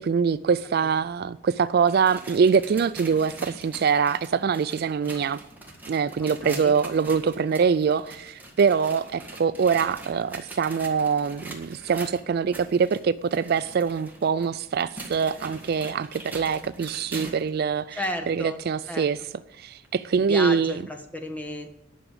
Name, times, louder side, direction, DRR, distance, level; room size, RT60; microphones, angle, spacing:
voice 1, 0.1-1.2 1.7-3.3 3.6-4.2 4.4-5.4 5.9-8.0 8.6-9.0 9.4-10.3 10.6-11.4 11.9-12.5 13.5-16.1 16.3-17.8 18.3-19.2 20.1-20.7, right 6 dB, 50° right, 0.3 m, -23 dB
sound 1, 1.7-17.5 18.0-18.1 18.8-18.9 19.8-19.9, right 2 dB, 10° right, 1.8 m, -43 dB
voice 2, 6.2-6.7 7.0-7.1 17.9-19.1 20.1-21.7, left 1 dB, 5° left, 1.2 m, -34 dB
11.0 x 6.1 x 8.7 m
head